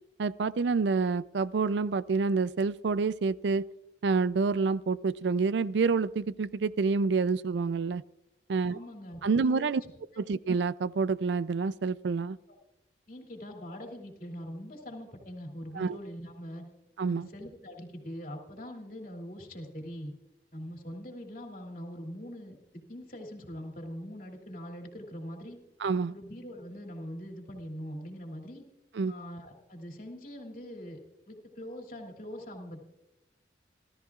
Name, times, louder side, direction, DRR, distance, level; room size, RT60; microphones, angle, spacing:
voice 1, 0.2-3.7 4.0-8.0 8.5-8.8 9.2-9.8 10.2-12.4 15.8-16.0 17.0-17.3 25.8-26.1 29.0-29.1, right 4 dB, 75° right, 18 dB, 0.4 m, -28 dB
voice 2, 8.7-9.7 13.1-16.6 17.1-20.1 20.5-25.6 26.1-28.6 29.1-31.0 31.3-32.8, equal, 50° left, 2 dB, 2.8 m, -42 dB
29.0 x 13.5 x 2.4 m, 0.94 s
head